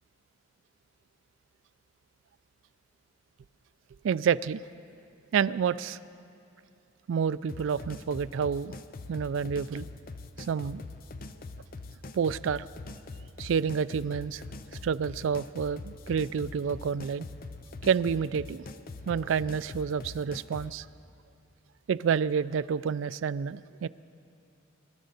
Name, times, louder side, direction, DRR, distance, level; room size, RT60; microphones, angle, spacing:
voice 1, 4.0-4.6 5.3-6.0 7.1-8.7 9.1-9.9 10.4-10.8 12.1-12.7 13.4-14.4 14.8-17.3 17.8-18.7 19.1-20.9 21.9-23.9, right 7 dB, 75° right, 16 dB, 0.3 m, -29 dB
sound 1, 7.5-20.7, left 3 dB, 45° left, 0.5 m, -43 dB
24.0 x 12.5 x 4.0 m, 2.8 s
head